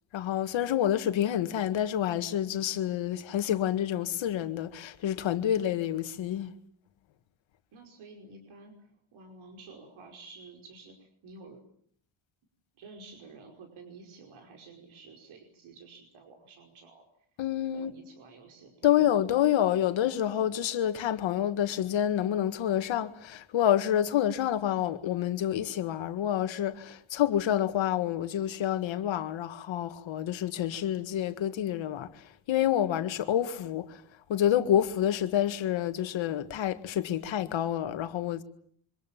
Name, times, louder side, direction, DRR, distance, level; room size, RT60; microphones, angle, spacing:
voice 1, 0.1-6.5 17.4-17.9 18.8-34.0 34.3-38.4, left 11 dB, 70° left, 1.8 m, -28 dB
voice 2, 7.7-11.6 12.8-17.1 17.7-19.0, right 3 dB, 75° right, 5.2 m, -51 dB
27.5 x 25.0 x 7.4 m
cardioid pair, 160°, 48 cm